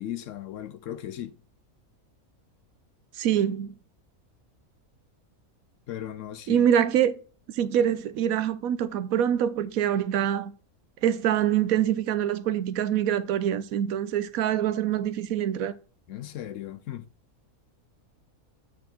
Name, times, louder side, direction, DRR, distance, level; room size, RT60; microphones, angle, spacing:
voice 1, 0.0-1.4 5.9-6.7 16.1-17.1, left 12 dB, 65° left, 0.9 m, -37 dB
voice 2, 3.1-3.7 6.5-7.2 7.5-10.5 11.0-15.7, right 10 dB, 75° right, 1.0 m, -25 dB
8.4 x 4.2 x 4.4 m
omnidirectional pair, 1.5 m